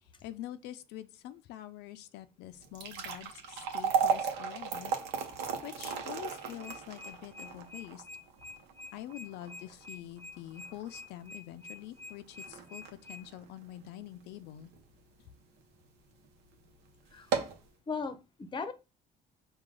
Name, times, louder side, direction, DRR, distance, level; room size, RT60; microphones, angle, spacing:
voice 1, 0.0-8.1 8.9-14.7, left 13 dB, 85° left, 0.4 m, -46 dB
sound 1, 2.5-14.8 15.3-15.4 16.1-16.2 16.6-16.7 17.1-17.7, right 6 dB, 85° right, 0.8 m, -36 dB
sound 2, 6.6-13.2, left 2 dB, 30° right, 0.9 m, -47 dB
voice 2, 17.9-18.7, left 5 dB, 30° left, 0.6 m, -37 dB
4.8 x 2.3 x 3.7 m
cardioid pair, 110°, 17 cm